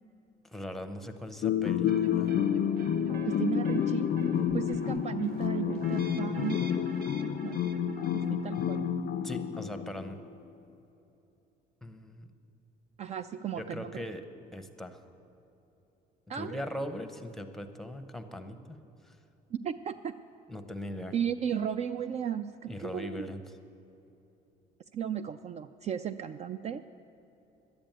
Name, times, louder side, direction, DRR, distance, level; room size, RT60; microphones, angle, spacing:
voice 1, 0.4-2.3 9.2-10.2 11.8-12.3 13.5-14.3 14.5-15.0 16.3-19.2 20.5-21.1 22.7-23.4, left 1 dB, ahead, 7 dB, 0.8 m, -40 dB
sound 1, 1.4-10.2, left 8 dB, 50° left, 0.5 m, -29 dB
sound 2, 1.9-8.9, right 4 dB, 65° right, 1.0 m, -48 dB
voice 2, 3.2-4.1 4.5-6.6 7.4-7.6 8.1-8.8 13.0-14.1 16.3-16.6 19.5-20.2 21.1-23.3 24.9-26.9, right 8 dB, 40° right, 12 dB, 0.4 m, -35 dB
11.0 x 8.8 x 9.1 m, 3.0 s
cardioid pair, 110°, 17 cm